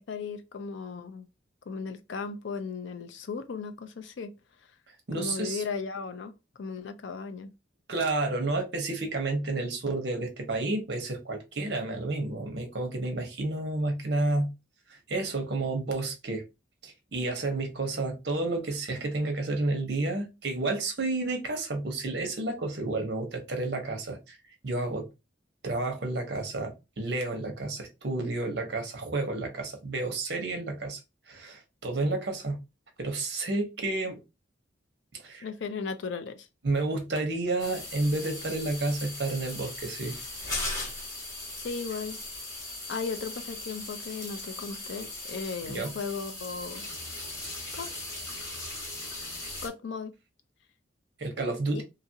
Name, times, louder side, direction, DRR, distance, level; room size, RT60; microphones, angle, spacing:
voice 1, 0.1-1.3 1.7-4.3 5.2-6.3 6.6-7.5 35.4-36.5 41.6-42.2 42.9-46.9 47.7-47.9 49.6-50.1 51.7-51.8, left 5 dB, 75° left, 0.4 m, -36 dB
voice 2, 5.1-5.6 7.9-14.5 14.9-16.4 16.8-24.4 24.6-25.1 25.6-31.0 31.3-32.6 33.0-34.2 35.2-35.4 36.6-40.2 45.7-45.9 51.2-51.8, right 2 dB, 60° right, 0.8 m, -30 dB
sound 1, 37.6-49.7, left 2 dB, 20° left, 1.3 m, -38 dB
2.8 x 2.5 x 2.7 m
head